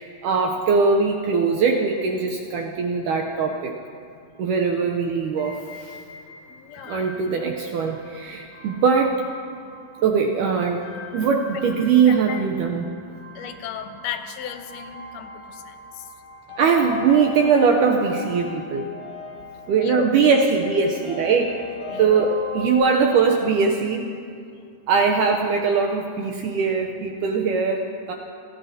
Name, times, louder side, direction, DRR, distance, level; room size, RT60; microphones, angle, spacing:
voice 1, 0.0-3.7 4.4-6.0 6.9-9.2 10.0-10.9 11.1-12.9 16.6-18.9 19.7-21.6 22.0-24.1 24.9-28.1, right 5 dB, 80° right, 2 dB, 1.9 m, -21 dB
sound 1, 5.4-22.8, left 3 dB, 50° left, 3.6 m, -40 dB
voice 2, 6.5-7.1 12.1-12.4 13.4-16.1 19.8-20.1 21.4-21.5 21.9-22.2, left 9 dB, 85° left, 8 dB, 2.6 m, -35 dB
30.0 x 13.5 x 2.7 m, 2.5 s
omnidirectional pair, 4.4 m